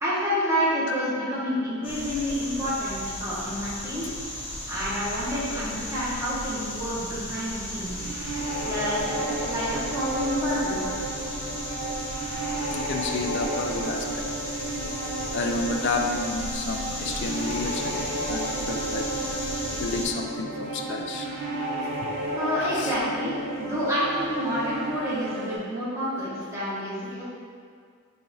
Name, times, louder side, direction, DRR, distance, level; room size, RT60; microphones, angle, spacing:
voice 1, 0.0-4.1 4.7-8.1 8.6-11.0 22.3-23.3 23.6-27.2, equal, 15° right, -10 dB, 1.0 m, -29 dB
sound 1, 1.8-20.1, left 1 dB, 25° left, 0.9 m, -35 dB
sound 2, 7.9-25.6, right 2 dB, 60° right, 0.5 m, -32 dB
voice 2, 12.7-14.0 15.3-19.1 19.8-21.3 22.6-22.9, left 3 dB, 55° left, 3 dB, 0.3 m, -30 dB
3.8 x 2.4 x 4.0 m, 2.2 s
head